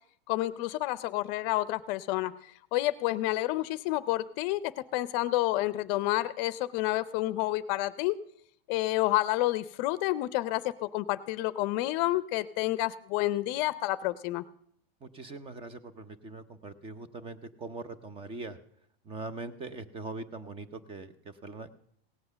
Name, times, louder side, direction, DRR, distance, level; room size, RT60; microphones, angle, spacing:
voice 1, 0.3-2.3 2.7-8.2 8.7-14.4, left 17 dB, 45° left, 15 dB, 0.6 m, -29 dB
voice 2, 15.0-18.6 19.1-21.8, right 3 dB, 20° right, 13 dB, 0.7 m, -42 dB
17.0 x 7.9 x 6.8 m, 0.69 s
supercardioid pair, 145°, 30 cm